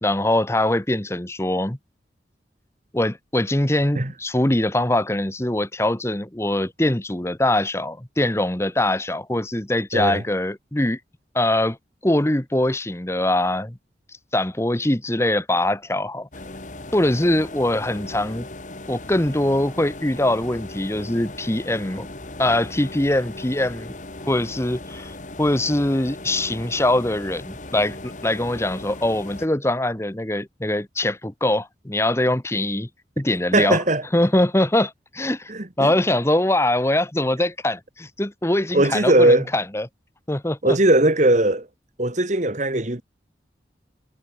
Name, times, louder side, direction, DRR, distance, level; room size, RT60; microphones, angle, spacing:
voice 1, 0.0-1.8 2.9-11.0 11.3-11.8 12.0-13.8 14.3-16.3 16.9-18.5 18.9-22.1 22.4-23.9 24.2-32.9 33.2-33.8 34.1-39.9 40.3-40.8, left 1 dB, 15° left, 1.2 m, -22 dB
voice 2, 9.9-10.2 33.5-34.0 35.5-35.9 38.7-39.5 40.6-41.7 42.0-43.0, right 1 dB, 45° right, 1.9 m, -19 dB
sound 1, 16.3-29.5, left 2 dB, 45° left, 2.2 m, -38 dB
head